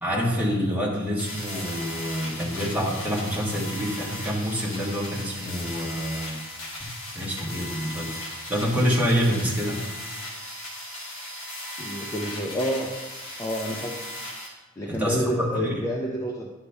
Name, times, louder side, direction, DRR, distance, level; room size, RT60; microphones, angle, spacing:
voice 1, 0.0-6.4 6.8-6.9 7.1-9.8 14.8-15.8, equal, 10° right, -4 dB, 1.5 m, -27 dB
sound 1, 1.2-14.5, left 1 dB, 65° left, 2.5 m, -37 dB
voice 2, 11.8-12.9 13.4-14.0 14.8-16.5, equal, 15° left, -1 dB, 0.5 m, -29 dB
10.5 x 5.5 x 3.4 m, 1.2 s
head